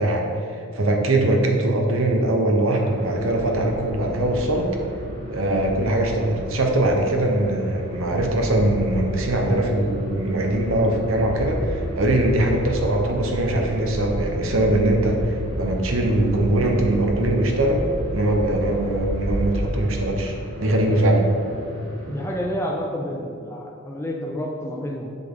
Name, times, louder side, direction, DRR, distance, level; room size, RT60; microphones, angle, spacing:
voice 1, 0.0-4.7 5.3-17.9 18.1-21.2, right 1 dB, 75° right, 2 dB, 0.9 m, -21 dB
sound 1, 2.7-22.4, equal, 45° right, 1.5 m, -37 dB
sound 2, 3.3-20.0, equal, 75° left, 1.0 m, -32 dB
voice 2, 22.1-25.2, equal, 10° left, -1 dB, 0.5 m, -29 dB
7.5 x 5.7 x 3.8 m, 2.4 s
head